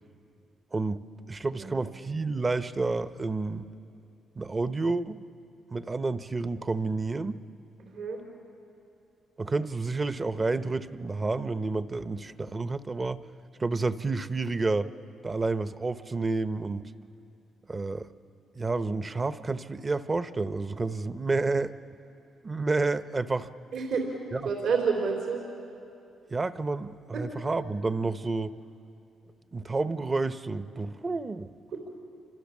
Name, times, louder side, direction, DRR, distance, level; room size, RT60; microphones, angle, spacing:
voice 1, 0.7-1.0 1.3-3.7 4.4-5.2 5.7-7.4 9.4-13.2 13.5-14.9 15.2-16.9 17.7-18.1 18.5-21.7 22.4-23.5 24.3-24.4 26.3-28.5 29.5-31.5, right 3 dB, 25° right, 12 dB, 0.8 m, -30 dB
voice 2, 7.8-8.2 23.7-24.1 24.4-25.4 27.1-27.2, right 5 dB, 75° right, 0 dB, 3.8 m, -28 dB
28.5 x 26.0 x 7.3 m, 2.7 s
cardioid pair, 90°, 0 cm